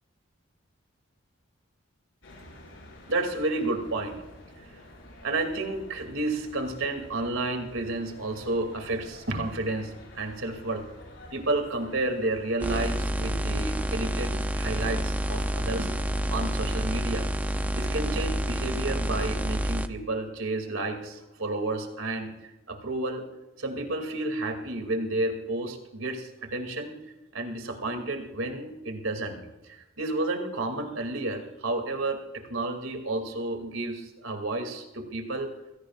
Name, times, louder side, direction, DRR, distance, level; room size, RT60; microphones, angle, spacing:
sound 1, 2.2-18.0, left 1 dB, 75° left, 5.8 m, -49 dB
voice 1, 3.1-4.2 5.2-10.8 11.3-16.0 16.3-17.3 17.7-23.2 23.6-26.9 27.3-35.5, right 2 dB, 80° right, 4 dB, 2.6 m, -31 dB
sound 2, 12.6-19.9, right 1 dB, 10° right, 0.5 m, -28 dB
27.5 x 17.0 x 2.5 m, 1.0 s
head